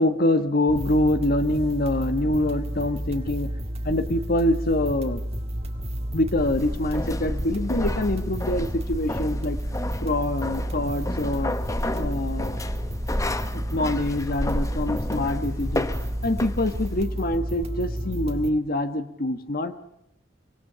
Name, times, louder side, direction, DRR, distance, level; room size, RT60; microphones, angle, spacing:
voice 1, 0.0-3.5 3.8-5.2 6.1-9.6 10.0-11.5 11.9-12.6 13.5-15.9 16.2-19.8, left 1 dB, 55° left, 9 dB, 1.3 m, -25 dB
sound 1, 0.7-18.5, equal, 35° right, 1.9 m, -31 dB
sound 2, 6.4-17.0, left 1 dB, 15° left, 1.1 m, -32 dB
24.5 x 19.0 x 6.8 m, 0.81 s
head